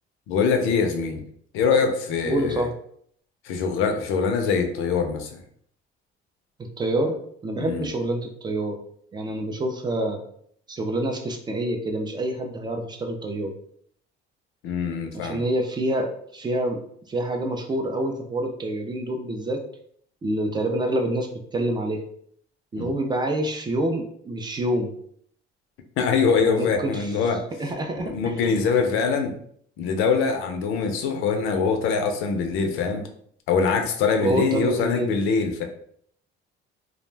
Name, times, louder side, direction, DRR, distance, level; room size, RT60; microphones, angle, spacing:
voice 1, 0.3-1.2 1.5-2.7 3.4-5.4 7.6-7.9 14.6-15.4 22.8-22.9 26.0-27.4 28.1-29.3 29.8-33.0 33.5-35.6, left 5 dB, 75° left, 5 dB, 0.5 m, -23 dB
voice 2, 2.2-2.7 6.6-8.8 9.1-10.2 10.7-13.5 15.1-16.8 17.1-19.6 20.2-22.0 22.7-24.9 26.4-27.1 27.6-28.5 34.2-35.1, right 1 dB, 20° right, 4 dB, 0.3 m, -27 dB
2.4 x 2.1 x 3.2 m, 0.64 s
cardioid pair, 125°, 21 cm